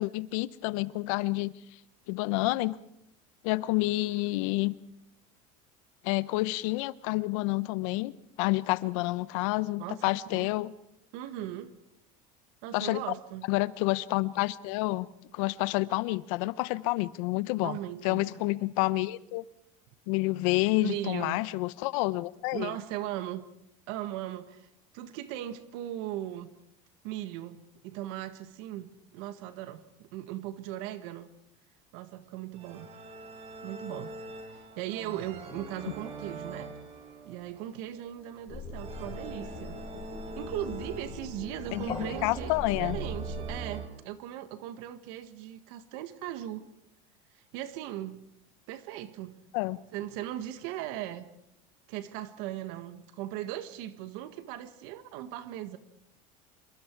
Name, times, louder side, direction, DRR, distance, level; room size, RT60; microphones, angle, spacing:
voice 1, 0.0-1.5 2.1-2.8 3.4-4.7 6.0-8.1 8.4-10.7 12.7-13.0 13.5-15.1 15.3-17.8 18.0-19.4 20.1-22.7 41.7-43.0 49.5-49.8, left 20 dB, 75° left, 18 dB, 0.9 m, -29 dB
voice 2, 9.8-10.5 11.1-11.7 12.6-13.5 17.6-18.4 20.8-21.4 22.5-23.4 23.9-24.7 24.9-26.5 27.0-31.3 31.9-32.9 33.6-34.2 34.5-36.7 37.2-39.8 40.4-42.5 42.8-46.6 47.3-48.2 48.7-49.4 49.9-51.3 51.9-55.8, right 13 dB, 70° right, 11 dB, 1.7 m, -38 dB
sound 1, 32.5-43.9, right 3 dB, 40° right, 3.9 m, -43 dB
sound 2, 38.5-43.6, left 3 dB, 30° left, 5.5 m, -41 dB
27.0 x 23.0 x 4.7 m, 0.78 s
cardioid pair, 150°, 17 cm